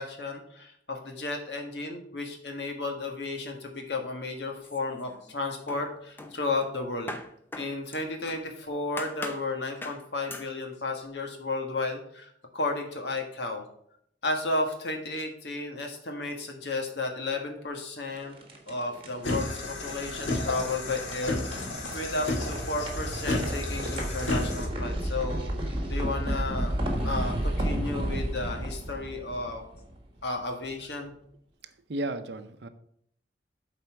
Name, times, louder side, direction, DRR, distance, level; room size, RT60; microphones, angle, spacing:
voice 1, 0.0-7.1 7.6-13.6 14.2-18.3 18.7-25.5 25.9-26.8 27.0-29.6 30.2-31.1, left 2 dB, 65° left, 3 dB, 1.5 m, -33 dB
sound 1, 4.6-5.3 5.7-8.5 9.0-9.5 9.8-10.0 10.3-10.5, left 1 dB, 10° left, 0.6 m, -41 dB
sound 2, 18.1-30.2, right 1 dB, 30° right, 1.5 m, -33 dB
sound 3, 19.2-24.7, left 2 dB, 80° left, 1.8 m, -32 dB
voice 2, 31.6-32.7, right 1 dB, 65° right, 10 dB, 0.6 m, -34 dB
7.8 x 4.3 x 5.8 m, 0.69 s
head